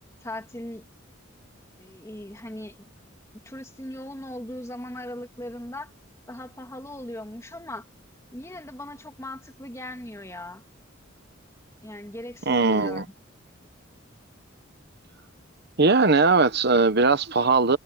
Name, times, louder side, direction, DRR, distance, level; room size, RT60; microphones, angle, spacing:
voice 1, 0.2-0.9 1.8-2.8 3.4-5.9 6.3-7.9 8.3-10.6 11.8-13.0, left 1 dB, 15° left, 2.7 m, -38 dB
voice 2, 12.5-13.0 15.8-17.8, right 3 dB, 55° right, 1.1 m, -19 dB
head